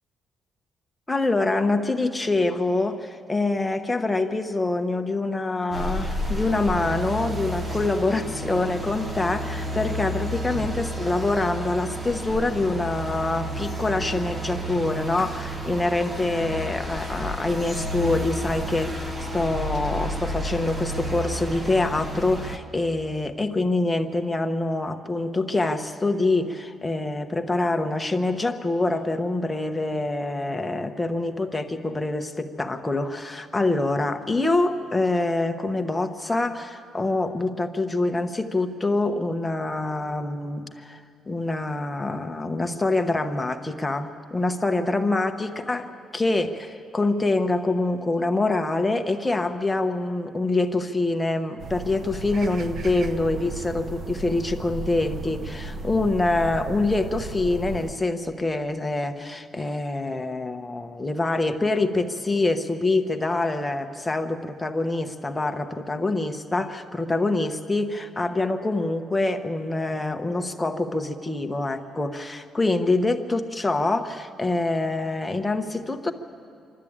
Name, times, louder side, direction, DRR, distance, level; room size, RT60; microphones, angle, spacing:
voice 1, 1.1-45.8 46.1-76.1, left 2 dB, 10° left, 6 dB, 0.9 m, -25 dB
sound 1, 5.7-22.6, equal, 20° right, 1.1 m, -31 dB
sound 2, 51.6-57.9, right 3 dB, 45° right, 0.7 m, -35 dB
26.0 x 12.5 x 8.7 m, 2.5 s
cardioid pair, 155°, 0 cm